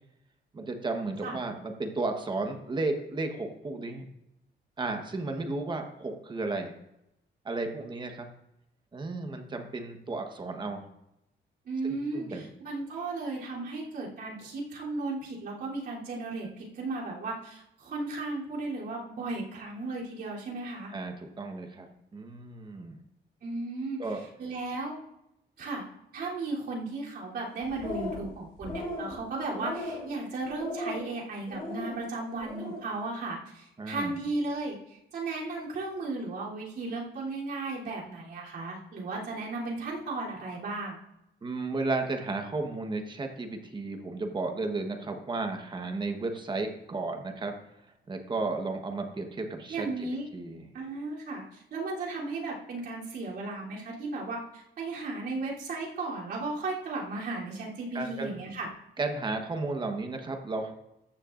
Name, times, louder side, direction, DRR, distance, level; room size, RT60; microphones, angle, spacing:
voice 1, 0.5-4.0 4.8-6.7 7.4-8.3 8.9-10.8 11.9-12.5 20.9-21.9 22.1-23.0 24.0-24.2 33.8-34.2 41.4-47.5 48.1-50.7 57.9-58.3 59.0-60.7, right 3 dB, 25° right, 4 dB, 1.2 m, -33 dB
voice 2, 11.6-20.9 23.4-24.0 24.4-24.9 25.6-25.8 26.1-41.0 49.7-50.3 50.7-58.7, right 3 dB, 65° right, -5 dB, 3.3 m, -35 dB
sound 1, 27.6-28.3 28.6-29.1 29.5-30.1 30.6-31.1 31.5-31.9 32.3-32.8, left 2 dB, 30° left, 4.3 m, -36 dB
14.5 x 10.0 x 2.6 m, 0.84 s
cardioid pair, 155°, 18 cm